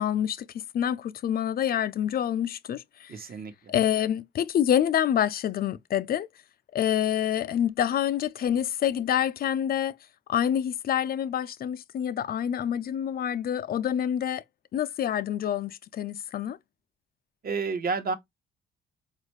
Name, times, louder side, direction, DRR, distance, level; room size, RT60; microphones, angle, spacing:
voice 1, 0.0-3.1 3.7-6.3 6.7-10.0 10.3-14.4 14.7-16.6, left 10 dB, 45° left, 0.4 m, -27 dB
voice 2, 3.1-3.5 17.4-18.1, right 4 dB, 45° right, 1.0 m, -30 dB
4.2 x 2.4 x 3.1 m
supercardioid pair, 60°, 21 cm